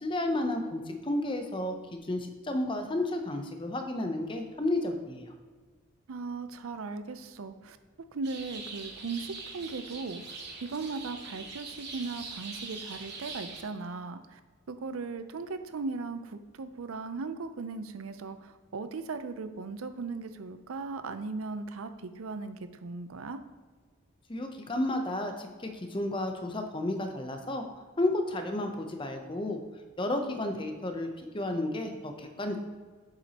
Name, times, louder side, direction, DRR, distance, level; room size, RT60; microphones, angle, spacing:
voice 1, 0.0-5.3 24.3-27.6 28.0-29.6 30.0-32.6, left 1 dB, 25° left, 5 dB, 0.7 m, -32 dB
voice 2, 6.1-7.8 8.1-14.4 14.7-23.4, right 4 dB, 90° right, 10 dB, 0.5 m, -38 dB
sound 1, 8.2-13.6, right 4 dB, 55° right, 1.1 m, -43 dB
7.7 x 7.1 x 2.9 m, 1.5 s
head